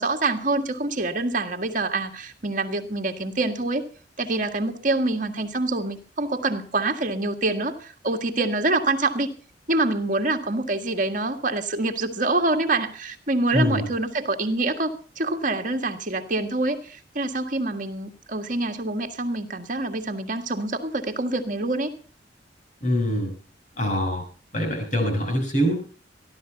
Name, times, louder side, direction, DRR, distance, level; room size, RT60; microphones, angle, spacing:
voice 1, 0.0-3.9 4.2-9.3 9.7-21.9, right 2 dB, 50° right, 6 dB, 1.7 m, -26 dB
voice 2, 13.5-13.9 22.8-23.3 23.8-24.2 24.5-25.7, equal, 45° left, 4 dB, 6.5 m, -23 dB
15.0 x 12.0 x 5.8 m, 0.39 s
head